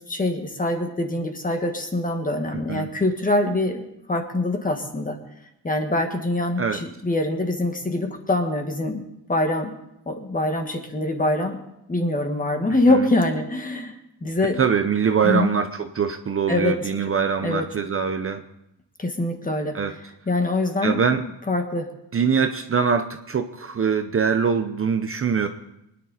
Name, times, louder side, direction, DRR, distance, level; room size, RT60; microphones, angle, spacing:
voice 1, 0.1-5.2 5.6-9.0 9.3-9.8 10.1-11.6 11.9-13.9 14.2-14.6 15.2-15.5 16.5-16.7 17.4-17.6 19.0-19.8 20.3-21.0 21.5-21.9, left 2 dB, 20° left, 5 dB, 1.5 m, -24 dB
voice 2, 2.5-2.9 6.6-6.8 12.7-13.1 14.6-18.4 19.7-19.9 20.8-21.2 22.1-25.5, right 6 dB, 35° right, 8 dB, 0.6 m, -23 dB
24.5 x 10.0 x 4.1 m, 0.84 s
wide cardioid pair, 170°, 40 cm